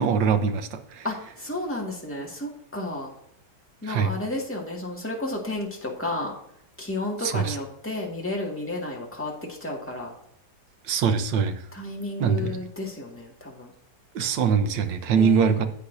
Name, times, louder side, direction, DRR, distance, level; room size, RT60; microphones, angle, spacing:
voice 1, 0.0-1.0 3.8-4.1 7.2-7.6 10.9-11.6 12.2-12.6 14.1-15.7, right 6 dB, 85° right, 9 dB, 1.5 m, -23 dB
voice 2, 1.0-3.1 3.8-6.3 6.8-10.1 11.7-13.7 15.1-15.5, left 2 dB, 5° left, -2 dB, 1.9 m, -32 dB
11.0 x 8.3 x 2.7 m, 0.72 s
omnidirectional pair, 1.9 m